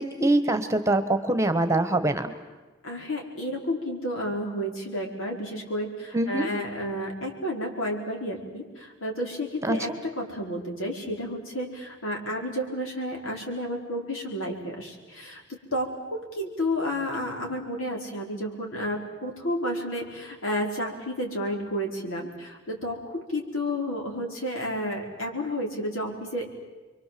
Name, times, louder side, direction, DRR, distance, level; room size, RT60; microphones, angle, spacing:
voice 1, 0.0-2.3 6.1-6.5 9.6-9.8, right 2 dB, 15° right, 9 dB, 1.3 m, -24 dB
voice 2, 2.8-15.4 15.7-26.4, equal, 85° left, 1 dB, 4.9 m, -31 dB
29.5 x 23.5 x 7.8 m, 1.2 s
head